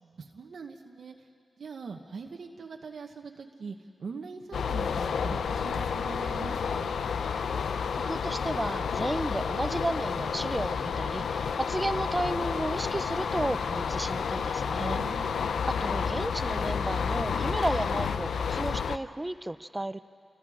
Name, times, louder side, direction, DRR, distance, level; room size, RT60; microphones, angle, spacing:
voice 1, 0.0-1.3 1.6-7.0 14.7-15.4, right 4 dB, 70° right, 3 dB, 1.1 m, -42 dB
sound 1, 4.5-19.0, left 6 dB, 80° left, 0.6 m, -30 dB
voice 2, 8.0-15.0 15.7-20.0, right 1 dB, 15° right, 13 dB, 0.7 m, -33 dB
27.5 x 23.5 x 5.0 m, 2.2 s
cardioid pair, 75°, 0 cm